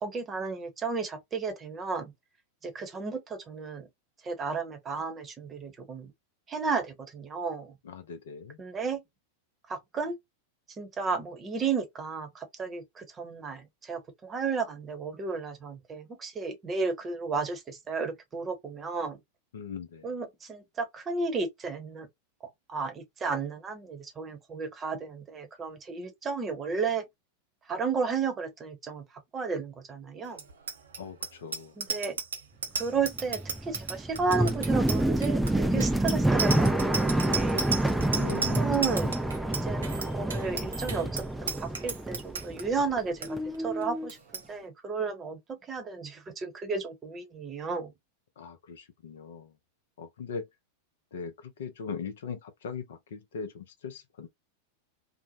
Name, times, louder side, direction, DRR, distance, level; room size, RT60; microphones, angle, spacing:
voice 1, 0.0-2.1 2.6-3.9 4.2-6.1 6.5-7.7 8.6-9.0 9.7-10.2 10.8-19.2 20.0-22.1 22.7-27.0 27.7-29.0 29.3-30.4 31.8-32.1 32.8-37.7 38.6-39.1 39.4-43.4 43.6-44.2 44.5-47.9, right 4 dB, 20° right, 0.9 m, -33 dB
voice 2, 7.8-8.6 19.5-20.1 31.0-31.7 38.1-38.7 48.4-49.5 50.0-50.5 51.1-54.3, left 6 dB, 60° left, 0.5 m, -40 dB
Bicycle bell, 30.3-42.6 43.0-43.3 43.5-43.8 44.1-44.4, right 5 dB, 70° right, 0.6 m, -34 dB
sound 1, 32.9-43.0 43.2-44.1, right 1 dB, 5° right, 0.3 m, -28 dB
2.7 x 2.0 x 2.5 m
figure-of-eight pair, 90°, 0 cm